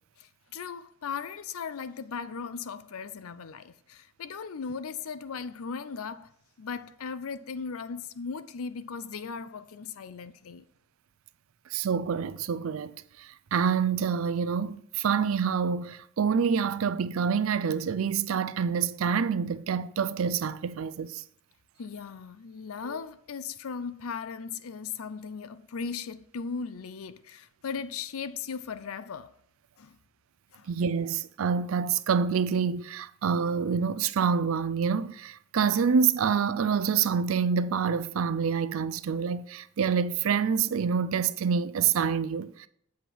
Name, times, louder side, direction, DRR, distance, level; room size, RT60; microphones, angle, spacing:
voice 1, 0.2-6.3 6.6-10.6 21.8-29.4 29.8-30.0 30.5-30.7, left 5 dB, 70° left, 0.5 m, -37 dB
voice 2, 11.7-21.2 30.7-42.7, right 6 dB, 65° right, 0.4 m, -27 dB
7.9 x 5.3 x 4.5 m
head